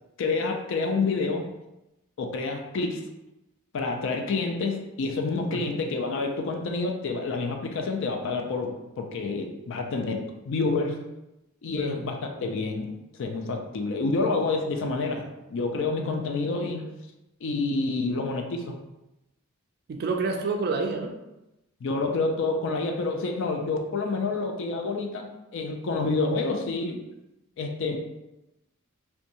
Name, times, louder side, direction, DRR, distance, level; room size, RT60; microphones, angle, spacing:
voice 1, 0.2-1.5 2.2-3.0 3.7-11.0 11.6-12.9 13.2-16.9 17.4-18.7 21.8-27.0 27.6-28.0, left 3 dB, 60° left, 4 dB, 0.4 m, -28 dB
voice 2, 19.9-21.1, right 3 dB, 45° right, 4 dB, 0.3 m, -29 dB
2.8 x 2.2 x 2.6 m, 0.93 s
head